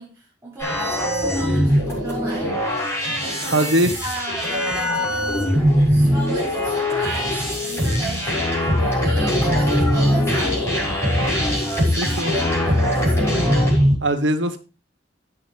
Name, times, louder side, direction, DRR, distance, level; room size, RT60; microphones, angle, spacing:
voice 1, 0.0-2.6 3.2-10.8 11.4-13.5, right 2 dB, 15° right, 3.1 m, -35 dB
sound 1, 0.6-14.0, equal, 15° left, 6.0 m, -21 dB
voice 2, 3.5-3.9 12.0-12.3 14.0-14.6, right 1 dB, 75° right, 1.5 m, -20 dB
16.0 x 6.3 x 3.5 m
head